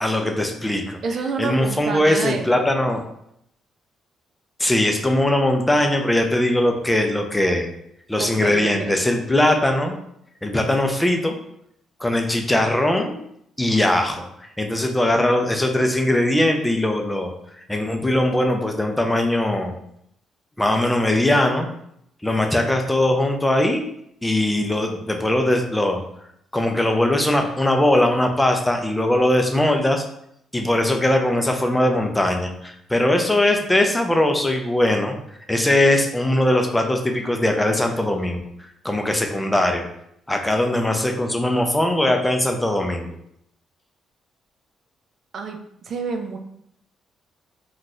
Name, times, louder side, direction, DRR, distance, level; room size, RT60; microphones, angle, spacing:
voice 1, 0.0-1.0 1.4-3.1 4.6-7.7 8.1-9.9 10.4-11.3 12.0-13.2 13.6-14.2 14.6-17.3 17.7-19.8 20.6-21.7 22.2-23.8 24.2-26.0 26.5-30.0 30.5-35.2 35.5-38.4 38.8-39.8 40.3-43.1, left 1 dB, 10° left, 4 dB, 0.5 m, -20 dB
voice 2, 1.0-2.5 8.2-9.0 45.3-46.4, right 5 dB, 55° right, 4 dB, 0.4 m, -28 dB
3.9 x 2.3 x 2.5 m, 0.74 s
cardioid pair, 90°, 0 cm